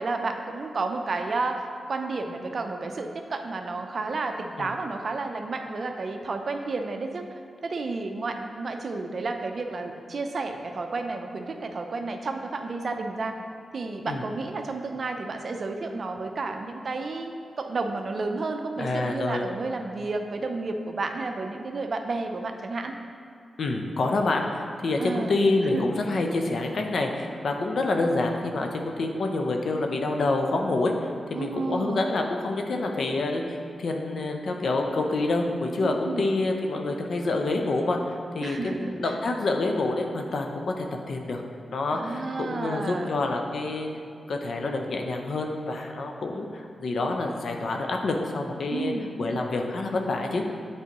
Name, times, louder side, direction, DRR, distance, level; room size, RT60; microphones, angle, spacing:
voice 1, 0.0-7.2 7.6-13.4 13.7-22.9 25.0-25.4 25.7-25.9 31.3-32.1 35.8-36.3 38.4-39.1 41.9-43.1 48.7-49.1, right 3 dB, 60° right, 5 dB, 0.5 m, -31 dB
voice 2, 18.8-19.5 23.6-41.4 41.7-43.9 44.3-48.9 49.2-50.4, left 2 dB, 70° left, 3 dB, 0.6 m, -27 dB
8.3 x 4.7 x 3.0 m, 2.3 s
cardioid pair, 60°, 0 cm